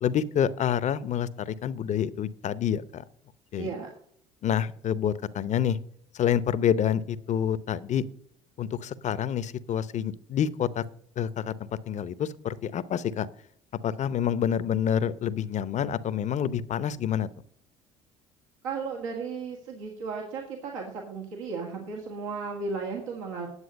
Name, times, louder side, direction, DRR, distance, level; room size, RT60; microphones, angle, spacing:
voice 1, 0.0-3.0 3.5-3.7 4.4-5.8 6.1-8.0 8.6-10.8 11.2-13.3 13.8-17.3, left 9 dB, 45° left, 16 dB, 0.8 m, -27 dB
voice 2, 3.5-3.9 18.6-23.5, right 4 dB, 85° right, 0 dB, 1.8 m, -35 dB
9.8 x 7.9 x 5.3 m, 0.66 s
hypercardioid pair, 65°, 16 cm